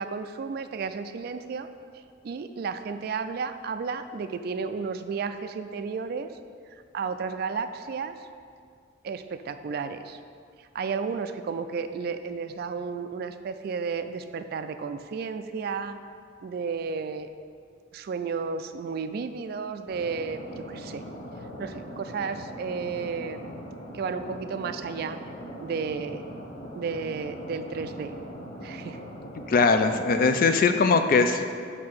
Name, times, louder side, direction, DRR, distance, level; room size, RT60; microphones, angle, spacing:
voice 1, 0.0-1.7 2.2-6.3 6.7-8.2 9.0-10.2 10.7-16.0 16.4-17.3 17.9-21.0 21.6-23.4 23.9-25.2 25.6-26.2 26.7-28.1 28.6-29.0, right 5 dB, 55° right, 9 dB, 0.3 m, -33 dB
sound 1, 19.9-30.4, equal, 30° left, 0.8 m, -41 dB
voice 2, 29.5-31.4, left 4 dB, 50° left, 7 dB, 0.4 m, -21 dB
7.5 x 2.8 x 5.9 m, 2.2 s
head